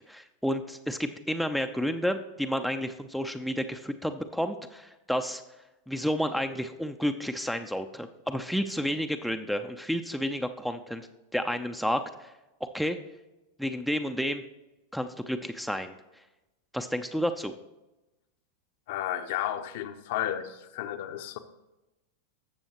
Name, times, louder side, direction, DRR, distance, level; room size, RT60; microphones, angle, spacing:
voice 1, 0.1-5.4 5.9-11.1 11.3-12.3 12.7-13.0 13.6-14.4 14.9-15.9 16.7-17.5, equal, ahead, 8 dB, 0.6 m, -31 dB
voice 2, 18.9-21.4, left 11 dB, 50° left, 8 dB, 0.8 m, -32 dB
19.5 x 7.0 x 3.0 m, 1.0 s
figure-of-eight pair, 90°, 0 cm